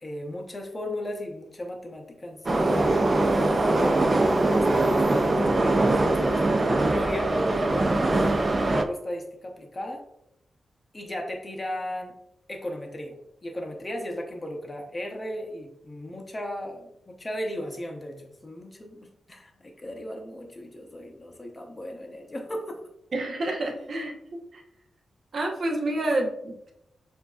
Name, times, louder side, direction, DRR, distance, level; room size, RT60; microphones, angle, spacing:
voice 1, 0.0-8.0 8.6-10.0 10.9-12.2 12.5-13.1 13.4-22.8, left 1 dB, 20° left, 2 dB, 0.7 m, -35 dB
Subway metro underground, 2.5-8.8, right 2 dB, 25° right, 0.4 m, -22 dB
voice 2, 23.1-24.6 25.3-26.7, right 1 dB, 50° right, 1 dB, 0.9 m, -29 dB
6.9 x 2.6 x 2.4 m, 0.81 s
wide cardioid pair, 145°, 0 cm